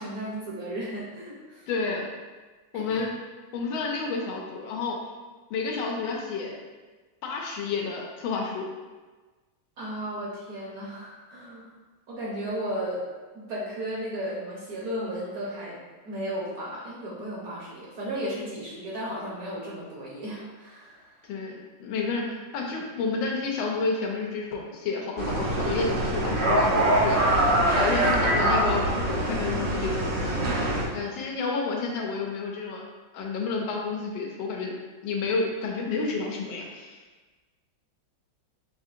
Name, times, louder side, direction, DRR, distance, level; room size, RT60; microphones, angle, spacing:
voice 1, 0.0-1.7 2.7-3.1 9.8-11.7 12.1-13.0 13.3-15.8 16.0-21.1, right 1 dB, 60° right, -5 dB, 1.0 m, -34 dB
voice 2, 1.7-2.1 2.7-3.1 3.5-5.0 5.5-6.5 7.2-8.7 21.3-27.4 27.7-30.5 30.9-32.8 33.1-34.7 35.0-37.0, left 4 dB, 85° left, 0 dB, 1.4 m, -30 dB
sound 1, 25.2-30.8, right 1 dB, 85° right, 0.5 m, -24 dB
5.0 x 2.7 x 2.5 m, 1.3 s
omnidirectional pair, 2.2 m